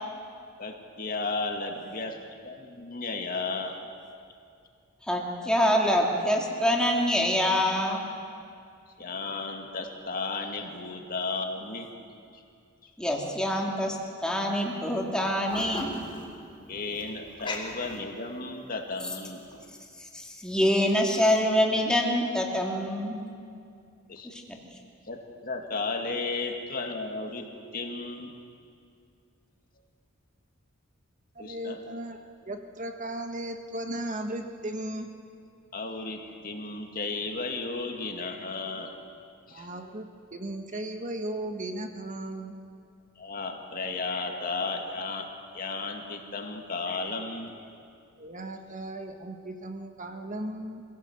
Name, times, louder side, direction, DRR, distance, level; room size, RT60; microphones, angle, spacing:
voice 1, 0.6-2.2 2.4-3.8 9.0-11.9 12.3-12.4 12.8-12.9 16.7-19.4 24.1-24.3 25.1-25.2 25.4-27.5 27.7-28.3 31.4-31.8 35.7-38.9 39.5-39.7 43.2-45.3 45.5-47.5, left 3 dB, 45° left, 3 dB, 2.1 m, -34 dB
voice 2, 5.1-8.0 13.0-14.0 14.2-15.9 20.1-23.2 24.2-24.6, equal, 5° left, -1 dB, 2.8 m, -25 dB
sound 1, 14.5-14.6 14.9-18.6 19.1-19.6, left 2 dB, 25° left, 3.4 m, -39 dB
voice 3, 31.3-32.2 32.5-35.1 39.5-42.5 48.2-50.8, right 1 dB, 40° right, 5 dB, 1.4 m, -36 dB
24.5 x 16.5 x 8.0 m, 2.4 s
head